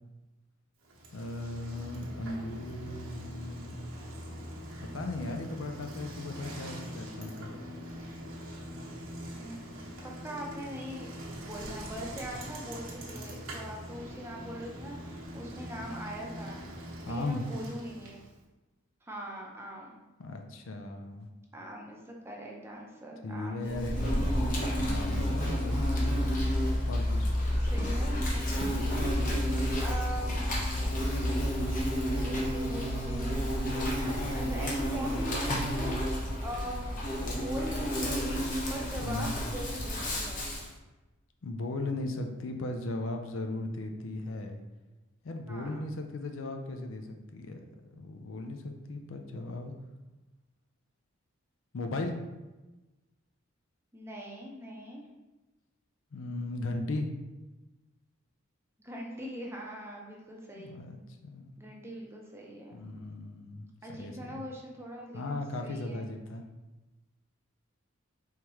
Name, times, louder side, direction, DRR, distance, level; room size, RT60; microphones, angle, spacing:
Bicycle, 0.8-18.4, equal, 85° right, 1.0 m, -43 dB
voice 1, 1.1-3.9 4.8-7.5 17.0-17.4 20.2-21.3 23.2-24.3 24.8-25.9 26.9-27.3 39.0-39.4 41.4-44.6 45.2-49.7 51.7-52.2 56.1-57.1 60.5-61.6 62.7-64.4 65.1-66.4, left 2 dB, 70° left, 5 dB, 0.5 m, -37 dB
voice 2, 9.3-9.8 10.0-16.6 17.1-18.2 19.0-20.0 21.5-24.4 27.5-28.5 28.8-29.4 29.8-30.6 32.2-33.9 34.3-36.1 36.4-36.9 37.3-40.5 45.5-45.9 53.9-55.1 58.8-60.7 61.6-62.8 63.8-66.1, equal, 10° right, -1 dB, 0.6 m, -42 dB
Insect, 23.6-40.7, equal, 40° left, 0.9 m, -30 dB
4.6 x 3.5 x 3.0 m, 1.1 s
head